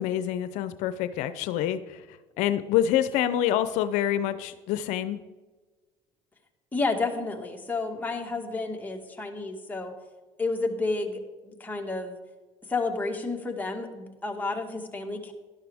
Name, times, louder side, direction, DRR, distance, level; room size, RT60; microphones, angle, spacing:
voice 1, 0.0-2.0 2.4-5.2, left 11 dB, 80° left, 12 dB, 0.5 m, -26 dB
voice 2, 6.7-9.9 10.4-12.2 12.7-15.3, left 3 dB, 15° left, 1 dB, 1.9 m, -31 dB
13.0 x 11.0 x 3.5 m, 1.3 s
cardioid pair, 95°, 12 cm